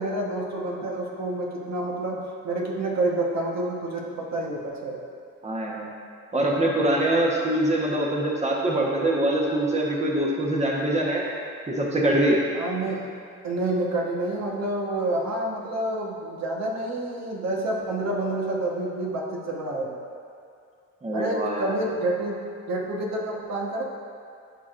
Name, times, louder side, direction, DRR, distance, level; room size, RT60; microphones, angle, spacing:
voice 1, 0.0-5.0 7.1-7.3 12.5-13.0 13.4-20.0 21.1-22.4 22.7-23.8, right 2 dB, 60° right, -2 dB, 1.3 m, -28 dB
voice 2, 5.4-5.9 6.3-11.2 11.7-12.4 21.0-21.7, right 1 dB, 20° right, -2 dB, 1.2 m, -24 dB
14.5 x 4.8 x 2.6 m, 2.5 s
cardioid pair, 90°, 30 cm